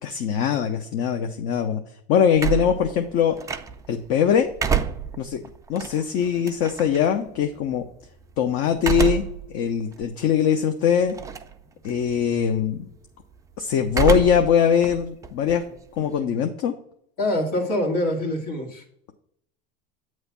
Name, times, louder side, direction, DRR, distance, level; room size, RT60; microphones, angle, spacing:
voice 1, 0.0-1.8 2.1-3.4 3.9-4.5 5.2-5.4 5.7-7.8 8.4-9.2 9.5-11.2 11.8-12.8 13.6-15.6 16.0-16.8, left 8 dB, 55° left, 5 dB, 0.7 m, -22 dB
sound 1, 2.4-4.0 4.4-7.0 8.8-9.5 10.0-10.1 11.1-11.6 11.9-12.3 13.9-14.5 14.8-16.2, right 8 dB, 10° right, 0.3 m, -27 dB
voice 2, 17.2-18.8, left 1 dB, 90° left, 0 dB, 2.2 m, -25 dB
8.2 x 3.2 x 5.9 m, 0.71 s
supercardioid pair, 125°, 29 cm